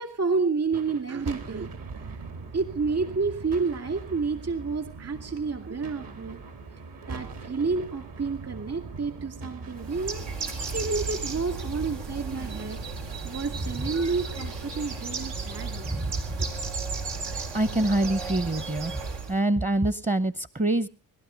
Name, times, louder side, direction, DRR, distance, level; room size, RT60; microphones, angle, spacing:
voice 1, 0.0-1.7 2.5-6.4 7.1-12.8 13.2-15.9, right 4 dB, 40° right, 7 dB, 2.5 m, -30 dB
sound 1, 0.6-17.0, right 4 dB, 60° right, 4.1 m, -42 dB
Bird, 9.8-19.4, right 4 dB, 85° right, 4.0 m, -34 dB
voice 2, 15.8-16.4 17.5-20.9, right 1 dB, 20° right, 15 dB, 0.8 m, -26 dB
21.0 x 12.5 x 5.2 m, 0.39 s
supercardioid pair, 75°, 39 cm